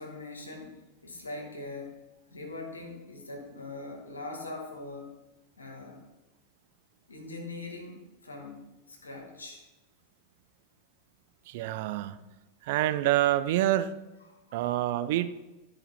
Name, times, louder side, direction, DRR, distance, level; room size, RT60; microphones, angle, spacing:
voice 1, 0.0-2.0 2.3-5.1 5.6-6.0 7.1-9.6 14.3-14.7, left 2 dB, 75° left, 2 dB, 1.6 m, -42 dB
voice 2, 11.5-12.2 12.7-13.9 14.5-15.3, right 13 dB, 50° right, 12 dB, 0.5 m, -27 dB
12.5 x 4.9 x 4.1 m, 1.1 s
figure-of-eight pair, 90°, 0 cm